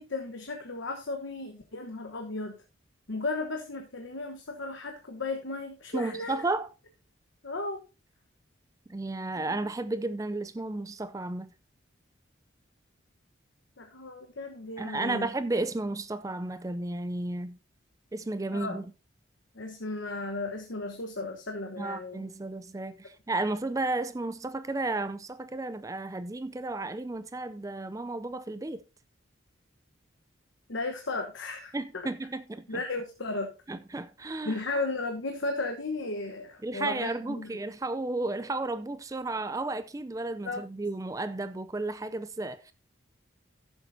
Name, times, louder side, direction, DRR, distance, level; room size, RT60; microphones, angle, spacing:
voice 1, 0.0-2.6 3.1-6.4 7.4-7.8 13.8-15.3 18.5-18.8 19.5-22.2 30.7-32.0 32.7-33.5 34.4-37.5 40.4-40.6, left 2 dB, 75° left, 1.1 m, -35 dB
voice 2, 5.9-6.7 8.9-11.5 14.8-17.6 18.1-18.9 21.8-28.8 31.7-32.8 33.7-34.6 36.6-42.7, right 2 dB, 15° right, 0.4 m, -33 dB
15.0 x 7.1 x 2.7 m
head